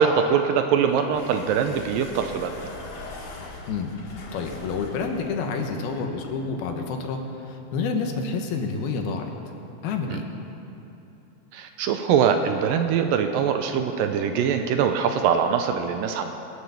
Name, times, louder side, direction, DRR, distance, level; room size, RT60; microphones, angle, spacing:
voice 1, 0.0-2.5 10.1-10.2 11.5-16.3, right 7 dB, 80° right, 7 dB, 2.2 m, -22 dB
sound 1, 0.7-6.4, left 2 dB, 45° left, 2.2 m, -41 dB
voice 2, 4.3-9.3 9.8-10.2, left 4 dB, 80° left, 3 dB, 3.1 m, -28 dB
20.0 x 9.7 x 7.0 m, 2.9 s
omnidirectional pair, 4.4 m